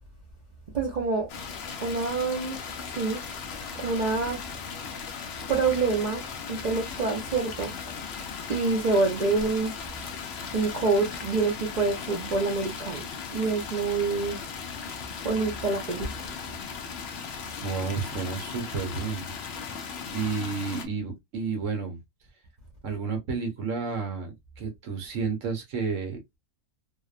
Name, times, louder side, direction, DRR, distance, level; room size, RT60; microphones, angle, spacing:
voice 1, 0.7-1.3 1.8-2.6 2.9-3.2 3.8-4.4 5.5-7.7 8.5-9.9 10.5-14.4 15.2-16.3, right 3 dB, 85° right, 0.3 m, -27 dB
sound 1, 1.3-20.9, left 6 dB, 65° left, 0.6 m, -37 dB
voice 2, 17.6-19.3 20.1-22.0 22.8-26.2, right 5 dB, 60° right, 1.1 m, -31 dB
2.7 x 2.1 x 2.3 m
omnidirectional pair, 1.6 m